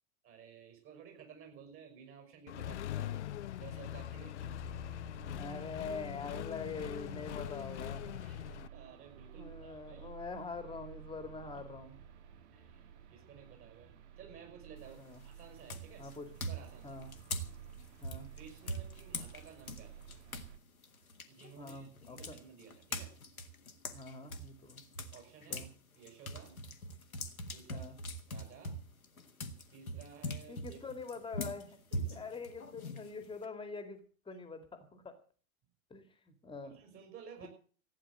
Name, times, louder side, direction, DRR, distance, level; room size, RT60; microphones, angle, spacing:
voice 1, 0.2-3.3 3.6-4.4 8.2-10.1 12.5-16.0 16.5-17.0 18.4-20.1 21.3-23.1 25.1-25.7 25.9-26.6 27.5-27.9 28.3-28.8 29.7-30.8 31.9-32.2 36.6-37.5, right 7 dB, 30° right, 4 dB, 6.0 m, -54 dB
Accelerating revving vroom, 2.5-8.7, left 11 dB, 55° left, 0.8 m, -42 dB
sound 1, 4.4-20.6, right 8 dB, 55° right, 2.0 m, -54 dB
voice 2, 5.4-8.0 9.4-12.0 15.0-15.2 16.0-16.3 16.8-17.1 18.0-18.3 21.6-22.4 23.9-24.8 25.5-25.7 27.7-28.0 30.5-31.8 32.1-34.0 34.3-35.1 35.9-36.8, left 4 dB, 10° left, 8 dB, 2.4 m, -44 dB
sound 2, 14.8-15.1 15.7-20.5 20.8-25.7 26.0-33.4, equal, 80° left, 1.8 m, -42 dB
15.0 x 9.8 x 7.8 m, 0.42 s
figure-of-eight pair, 95°, 42 cm